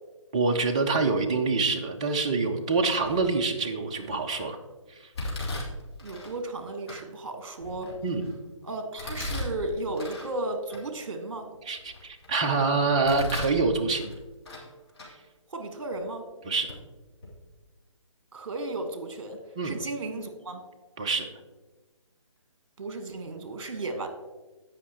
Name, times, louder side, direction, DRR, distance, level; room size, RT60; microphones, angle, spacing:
voice 1, 0.3-4.6 8.0-8.3 11.7-14.1 16.5-16.7 19.6-19.8 21.0-21.3, right 4 dB, 10° right, 3 dB, 0.3 m, -26 dB
Domestic sounds home sounds, 3.0-3.4 4.0-4.4 5.1-6.3 6.9-7.0 7.6-8.3 9.0-10.3 10.7-10.8 11.4-12.3 12.8-13.6 13.9-14.7 14.9-15.1 15.9-16.0 16.7-16.8 17.1-17.3, left 1 dB, 50° left, 3.0 m, -37 dB
voice 2, 6.0-8.0 8.6-11.5 15.5-16.2 18.3-20.6 22.8-24.1, right 2 dB, 50° right, 7 dB, 1.4 m, -34 dB
16.5 x 5.6 x 2.9 m, 1.2 s
figure-of-eight pair, 145°, 17 cm